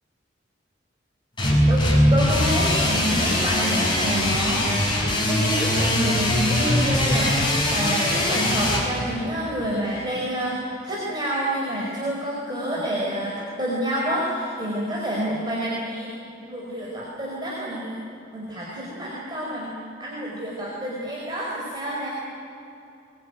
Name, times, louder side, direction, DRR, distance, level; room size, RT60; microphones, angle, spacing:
sound 1, 1.4-8.8, left 1 dB, 25° left, 6.7 m, -21 dB
voice 1, 2.1-5.0 5.2-7.4 7.7-16.1 16.5-18.0 18.3-22.1, equal, 25° right, -5 dB, 4.8 m, -28 dB
23.0 x 22.0 x 9.2 m, 2.8 s
head